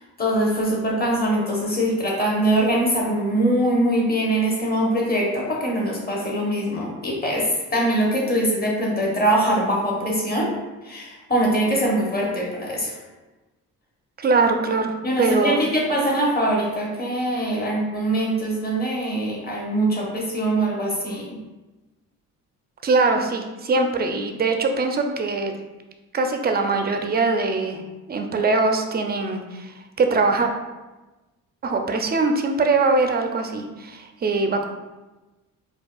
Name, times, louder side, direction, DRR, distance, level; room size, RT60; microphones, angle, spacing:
voice 1, 0.0-10.5 10.8-13.0 15.0-21.4, right 1 dB, 25° left, -2 dB, 1.0 m, -23 dB
voice 2, 14.2-14.9 15.2-15.6 22.8-25.5 26.1-27.8 28.1-30.5 31.6-34.6, right 3 dB, 30° right, 5 dB, 0.4 m, -22 dB
4.4 x 2.3 x 2.3 m, 1.1 s
cardioid pair, 90°, 34 cm